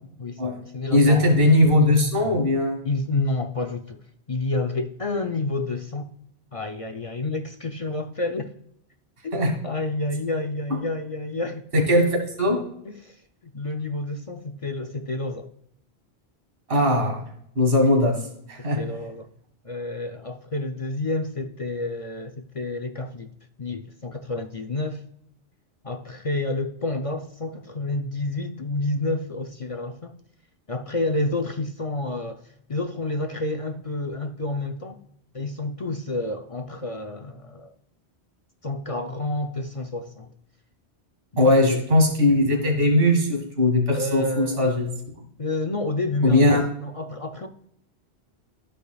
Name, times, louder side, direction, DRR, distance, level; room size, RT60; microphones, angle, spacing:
voice 1, 0.2-1.3 2.8-4.0 4.3-6.1 6.5-8.5 9.2-11.7 12.8-13.2 13.4-15.5 18.6-19.3 19.6-23.3 23.6-25.0 25.8-30.1 30.7-32.4 32.7-35.0 35.3-37.7 38.6-40.3 41.3-41.8 44.0-44.6 45.4-47.5, left 2 dB, 40° left, 0.5 m, -29 dB
voice 2, 0.9-2.8 9.3-9.5 11.9-12.6 16.7-17.2 17.6-18.2 18.5-18.8 41.4-44.9 46.2-46.6, left 1 dB, 60° right, 2.0 m, -19 dB
14.5 x 5.0 x 2.3 m
omnidirectional pair, 1.1 m